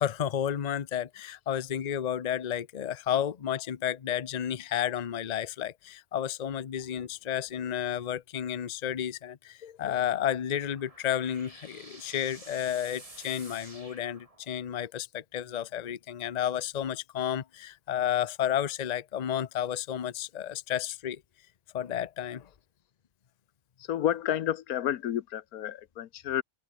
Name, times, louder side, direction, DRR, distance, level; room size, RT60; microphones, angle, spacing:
voice 1, 0.0-21.2 21.7-22.5, left 10 dB, 40° left, 0.7 m, -32 dB
sound 1, 10.4-14.8, right 2 dB, 25° right, 2.8 m, -50 dB
voice 2, 23.8-26.4, left 11 dB, 90° left, 1.3 m, -30 dB
open air
omnidirectional pair, 1.5 m